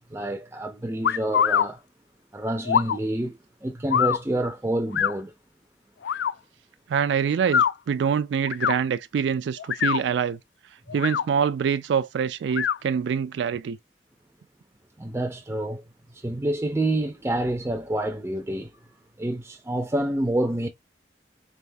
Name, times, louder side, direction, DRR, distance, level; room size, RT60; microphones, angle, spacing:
voice 1, 0.1-1.8 2.3-5.3 15.0-15.8 16.1-18.7 19.2-20.7, right 1 dB, 15° right, 0.4 m, -28 dB
sound 1, 1.0-1.7 2.6-3.0 3.9-4.2 4.9-5.1 6.0-6.3 7.4-7.7 8.5-8.8 9.6-10.0 10.9-11.2 12.5-12.8, left 8 dB, 80° left, 0.3 m, -23 dB
voice 2, 6.9-10.4 10.9-13.8, right 7 dB, 85° right, 0.3 m, -25 dB
4.0 x 3.5 x 2.6 m
head